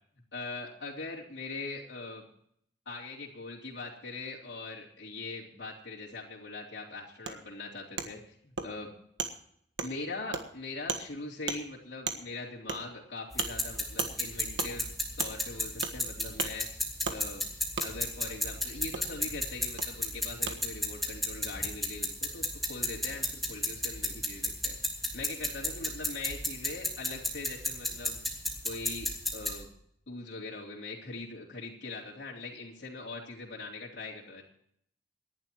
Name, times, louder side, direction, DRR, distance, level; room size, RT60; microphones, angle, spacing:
voice 1, 0.3-2.3 2.8-8.9 9.8-16.7 17.1-17.5 17.8-24.8 25.1-28.2 28.6-29.7 30.1-34.4, left 3 dB, 70° left, -5 dB, 3.3 m, -41 dB
Wood, 7.3-7.4 8.0-8.1 8.6-8.7 9.2-9.3 9.8-9.9 10.3-10.4 10.9-11.0 11.5-11.6 12.1-12.2 12.7-12.8 13.4-13.5 14.0-14.1 14.6-14.7 15.2-15.3 15.8-16.0 16.4-16.5 17.0-17.2 17.8-17.9 18.9-19.0 19.8-19.9 20.5-20.6, right 5 dB, 80° right, 1.5 m, -34 dB
sound 1, 13.3-29.6, left 1 dB, ahead, 2.9 m, -34 dB
28.0 x 11.0 x 3.1 m, 0.68 s
head